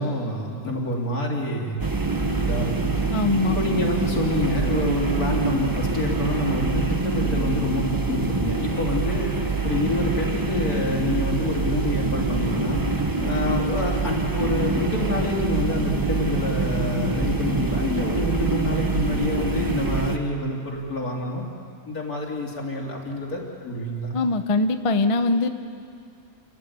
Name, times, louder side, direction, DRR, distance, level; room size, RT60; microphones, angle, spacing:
voice 1, 0.0-1.8 2.4-2.9 3.4-9.3 9.6-12.8 13.2-21.4 21.9-24.1, left 1 dB, 70° left, -1 dB, 3.8 m, -27 dB
sound 1, 1.8-20.2, right 3 dB, 15° right, 1.1 m, -25 dB
voice 2, 3.1-3.6 24.1-25.5, left 3 dB, 30° left, 8 dB, 0.7 m, -22 dB
28.5 x 14.5 x 9.5 m, 2.3 s
omnidirectional pair, 1.6 m